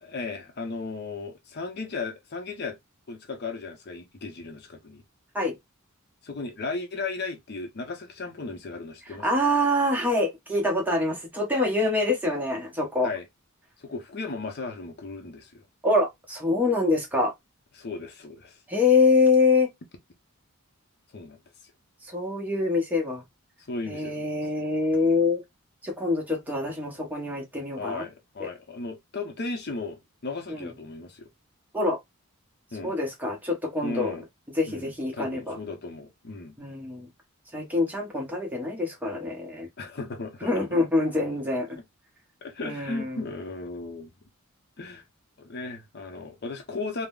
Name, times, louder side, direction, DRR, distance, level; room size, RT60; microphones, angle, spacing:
voice 1, 0.0-2.8 3.1-5.0 6.2-9.3 13.0-13.3 13.8-15.6 17.7-18.6 21.1-21.4 23.7-24.3 24.9-25.2 27.8-31.3 32.7-32.9 33.8-34.3 34.7-36.6 39.8-40.5 42.4-44.1 44.8-45.0 45.4-47.1, left 3 dB, 50° left, 0.6 m, -36 dB
voice 2, 9.2-13.1 15.8-17.3 18.7-19.7 22.0-23.2 23.9-25.4 25.8-28.0 28.4-28.5 30.5-30.7 31.7-32.0 32.8-34.1 34.6-35.6 36.6-37.1 37.5-39.7 40.4-41.8 42.6-43.2, left 3 dB, 10° right, 0.7 m, -25 dB
3.6 x 2.0 x 2.3 m
head